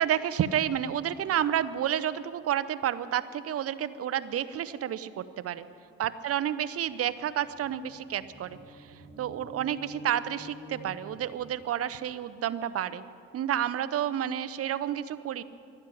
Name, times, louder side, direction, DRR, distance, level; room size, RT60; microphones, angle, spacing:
voice 1, 0.0-5.6 6.0-8.9 9.2-13.0 13.3-15.4, right 10 dB, 50° right, 14 dB, 0.8 m, -30 dB
sound 1, 6.4-6.5 6.7-11.8, right 2 dB, 20° right, 4.7 m, -48 dB
12.0 x 12.0 x 9.9 m, 2.5 s
supercardioid pair, 85°, 30 cm